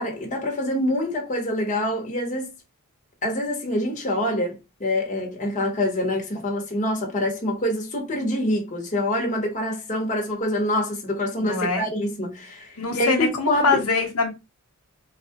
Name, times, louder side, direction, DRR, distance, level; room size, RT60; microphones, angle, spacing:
voice 1, 0.0-2.5 3.2-13.8, left 1 dB, 35° left, 1.0 m, -26 dB
voice 2, 11.4-11.8 12.8-14.3, left 4 dB, 85° left, 1.0 m, -23 dB
4.0 x 2.3 x 2.8 m
head